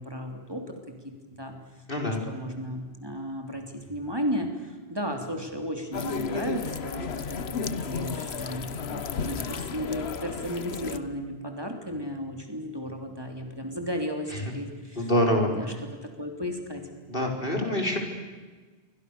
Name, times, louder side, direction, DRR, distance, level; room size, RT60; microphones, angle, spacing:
voice 1, 0.0-1.6 2.0-15.1 15.5-16.8, equal, 20° right, 4 dB, 3.3 m, -34 dB
voice 2, 1.9-2.2 15.0-15.8 17.1-18.0, left 1 dB, 55° left, 2 dB, 4.9 m, -25 dB
sound 1, 5.9-11.0, left 5 dB, 75° left, 1.3 m, -33 dB
28.5 x 24.0 x 6.9 m, 1.4 s
omnidirectional pair, 1.1 m